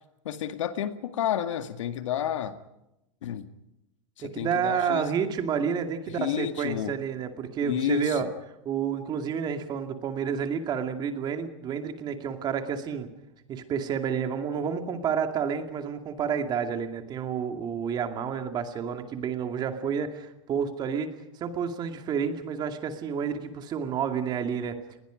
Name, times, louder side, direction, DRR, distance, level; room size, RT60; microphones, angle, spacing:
voice 1, 0.2-2.6 3.2-3.5 4.2-5.1 6.1-7.0 7.6-8.3, left 10 dB, 90° left, 9 dB, 2.1 m, -30 dB
voice 2, 4.2-8.3 8.6-13.1 13.5-24.8, right 7 dB, 25° right, 6 dB, 2.4 m, -30 dB
29.0 x 20.5 x 5.2 m, 0.88 s
supercardioid pair, 150°, 16 cm